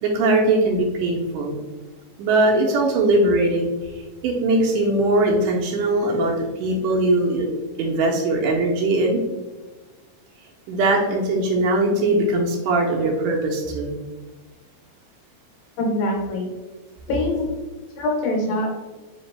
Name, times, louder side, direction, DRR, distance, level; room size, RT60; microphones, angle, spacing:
voice 1, 0.0-1.5 2.2-3.7 4.0-7.5 7.8-9.2 10.7-13.9, right 2 dB, 80° right, 0 dB, 2.0 m, -20 dB
voice 2, 15.8-16.5 17.1-17.5 18.0-18.7, left 1 dB, 75° left, -1 dB, 2.1 m, -23 dB
5.1 x 2.8 x 3.2 m, 1.2 s
omnidirectional pair, 3.9 m